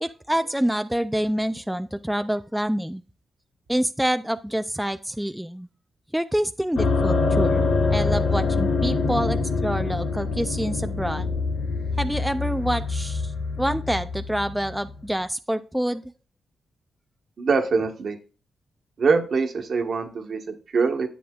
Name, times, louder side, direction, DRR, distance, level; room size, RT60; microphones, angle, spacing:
voice 1, 0.0-3.0 3.7-5.7 6.1-7.6 7.9-11.3 12.0-16.0, equal, 5° right, 10 dB, 0.4 m, -27 dB
sound 1, 6.8-15.1, left 3 dB, 75° left, 1.4 m, -25 dB
voice 2, 17.4-18.2 19.0-21.1, right 4 dB, 60° right, 4 dB, 1.4 m, -23 dB
10.0 x 7.8 x 2.4 m, 0.36 s
cardioid pair, 70°, 0 cm